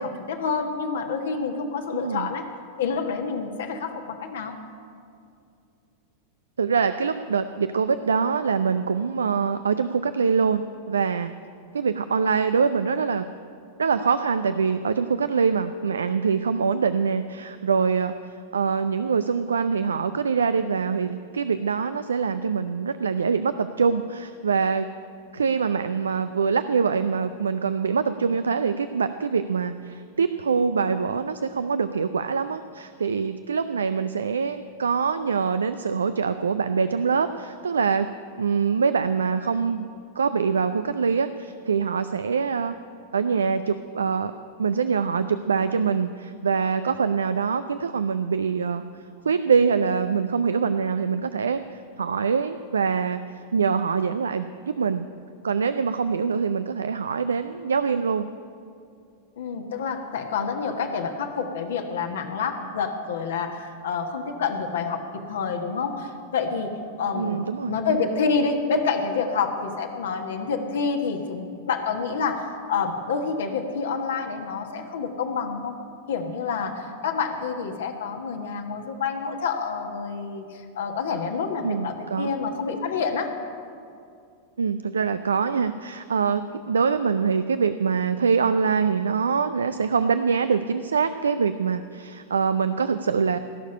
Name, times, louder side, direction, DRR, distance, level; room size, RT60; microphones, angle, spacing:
voice 1, 0.0-2.5 2.8-4.6 59.4-75.8 76.1-83.3, left 5 dB, 60° left, 3 dB, 1.4 m, -28 dB
voice 2, 1.9-2.3 6.6-11.3 11.7-13.3 13.8-24.9 25.3-38.1 38.4-39.9 40.2-42.8 43.1-44.3 44.6-48.8 49.2-51.6 52.0-55.1 55.4-58.3 67.1-67.8 81.6-82.3 84.6-93.4, right 5 dB, 70° right, 11 dB, 0.4 m, -24 dB
18.5 x 6.6 x 10.0 m, 2.4 s
figure-of-eight pair, 90°, 0 cm